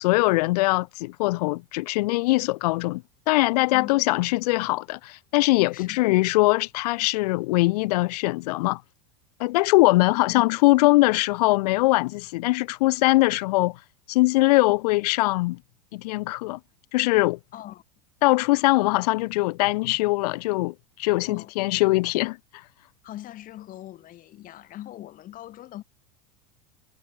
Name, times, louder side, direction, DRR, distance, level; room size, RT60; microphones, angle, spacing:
voice 1, 0.0-8.8 9.4-13.8 14.1-15.6 15.9-16.6 16.9-17.4 18.2-22.4, left 21 dB, 75° left, 0.4 m, -22 dB
voice 2, 3.7-4.1 5.7-6.1 10.3-10.6 17.5-17.8 21.3-21.5 23.0-25.8, left 14 dB, 40° left, 3.0 m, -41 dB
supercardioid pair, 110°, 21 cm